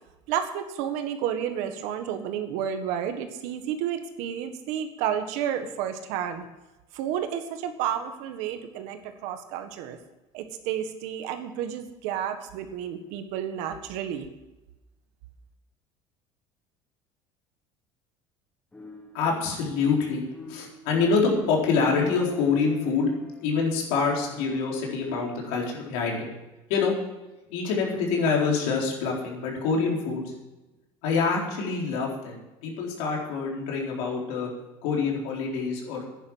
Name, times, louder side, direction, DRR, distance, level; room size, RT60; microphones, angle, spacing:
voice 1, 0.3-6.4 6.9-10.0 10.3-14.3, right 9 dB, 75° right, 7 dB, 1.6 m, -31 dB
sound 1, 18.7-20.1 20.3-25.6, left 3 dB, 10° left, 1.4 m, -45 dB
voice 2, 19.1-20.2 20.5-23.1 23.4-26.3 26.7-26.9 27.5-30.3 31.0-34.5 34.8-36.0, left 5 dB, 85° left, -1 dB, 4.3 m, -26 dB
11.0 x 10.5 x 7.3 m, 1.0 s
cardioid pair, 140°, 12 cm